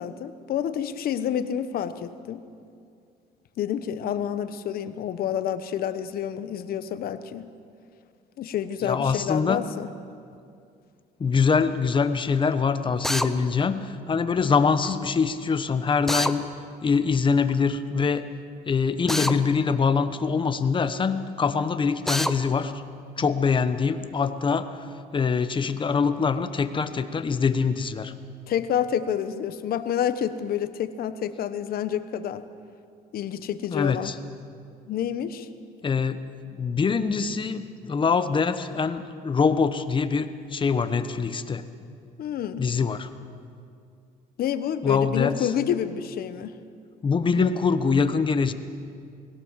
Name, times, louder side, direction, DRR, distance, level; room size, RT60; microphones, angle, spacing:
voice 1, 0.0-2.4 3.6-7.5 8.4-9.9 28.5-32.4 33.1-34.1 34.9-35.5 42.2-42.7 44.4-46.6 47.4-47.5, left 9 dB, 60° left, 11 dB, 1.1 m, -28 dB
voice 2, 8.8-9.6 11.2-16.4 16.8-18.2 18.7-22.7 23.2-24.9 25.1-28.1 33.7-34.1 35.8-36.2 36.6-41.6 42.6-43.1 44.8-45.4 47.0-48.5, left 5 dB, 30° left, 10 dB, 1.1 m, -24 dB
Drill, 13.0-13.3 16.1-16.4 19.1-19.4 22.1-22.3, left 1 dB, ahead, 0.8 m, -25 dB
20.5 x 17.0 x 7.4 m, 2.4 s
cardioid pair, 110°, 17 cm